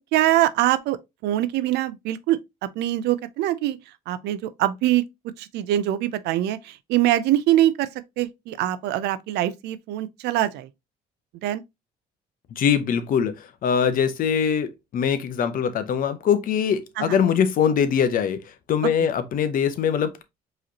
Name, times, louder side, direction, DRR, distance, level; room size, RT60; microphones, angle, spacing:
voice 1, 0.0-2.4 2.8-3.8 4.1-5.1 5.4-7.9 8.2-10.7 11.4-11.6 17.0-17.2, right 14 dB, 80° right, 0.5 m, -23 dB
voice 2, 12.5-20.2, left 7 dB, 55° left, 0.7 m, -22 dB
4.8 x 3.1 x 2.8 m
cardioid pair, 110°, 17 cm